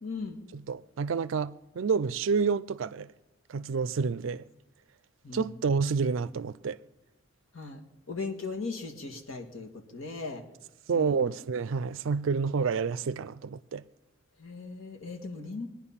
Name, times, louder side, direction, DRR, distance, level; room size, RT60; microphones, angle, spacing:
voice 1, 0.0-0.4 5.2-5.5 7.5-7.8 8.1-10.4 10.9-11.4 14.4-15.7, left 3 dB, 85° left, 1.7 m, -38 dB
voice 2, 0.5-3.1 3.5-4.4 5.3-6.8 10.9-13.8, right 5 dB, 70° right, 0.4 m, -29 dB
21.5 x 10.0 x 5.7 m
head